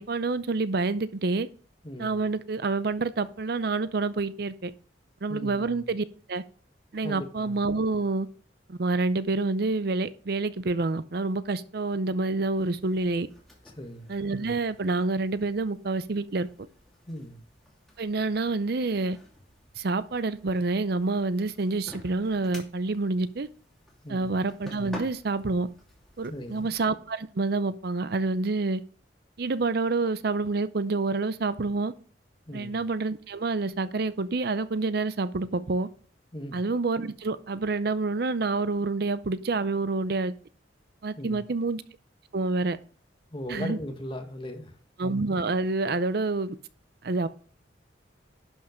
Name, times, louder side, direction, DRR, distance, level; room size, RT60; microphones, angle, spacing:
voice 1, 0.0-1.5 2.0-4.7 5.2-6.4 6.9-8.3 8.7-13.3 14.1-16.5 18.0-19.2 19.8-23.5 24.1-25.7 26.2-28.8 29.4-31.9 32.5-35.9 36.5-40.3 41.0-41.8 42.3-42.8 43.5-43.8 45.0-46.6 47.0-47.3, right 3 dB, 55° right, 0.6 m, -28 dB
voice 2, 1.8-2.2 5.3-5.9 7.0-7.6 13.6-14.1 17.1-17.4 24.0-24.3 26.3-26.7 32.5-32.8 36.3-36.6 41.1-41.4 43.3-44.8, equal, 25° left, 1.6 m, -38 dB
sound 1, 12.5-26.9, equal, ahead, 2.7 m, -51 dB
11.5 x 5.6 x 5.1 m
head